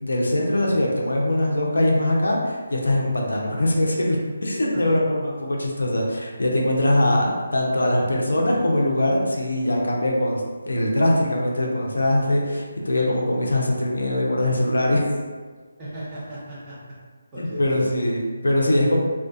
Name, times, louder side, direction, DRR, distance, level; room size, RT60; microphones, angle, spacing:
voice 1, 0.0-5.2 5.5-15.1 17.4-19.0, left 1 dB, 85° left, -1 dB, 0.5 m, -22 dB
voice 2, 4.7-5.2 5.6-5.7 15.8-16.8 17.3-17.9, right 1 dB, 20° right, -10 dB, 0.9 m, -35 dB
2.4 x 2.3 x 2.5 m, 1.5 s
figure-of-eight pair, 160°, 0 cm